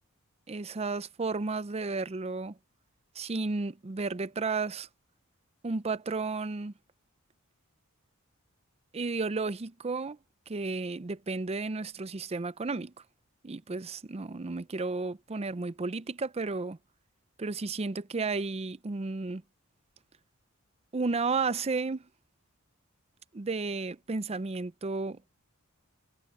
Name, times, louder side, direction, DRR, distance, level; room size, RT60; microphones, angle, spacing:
voice 1, 0.5-2.6 3.2-4.9 5.6-6.7 8.9-10.2 10.5-12.9 13.4-16.8 17.4-19.4 20.9-22.0 23.3-25.2, right 3 dB, 30° right, 0.5 m, -33 dB
head